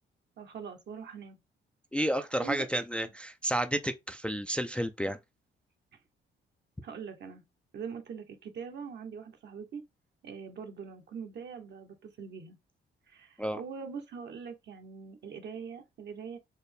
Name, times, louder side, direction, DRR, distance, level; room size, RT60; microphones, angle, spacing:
voice 1, 0.4-1.4 2.4-2.7 3.0-3.1 5.9-6.0 6.8-7.4 7.7-9.8 10.2-12.6 13.1-16.4, right 6 dB, 60° right, 1.0 m, -42 dB
voice 2, 1.9-5.2 13.4-13.6, right 1 dB, 5° left, 0.4 m, -31 dB
4.1 x 2.0 x 3.3 m
cardioid pair, 90°, 20 cm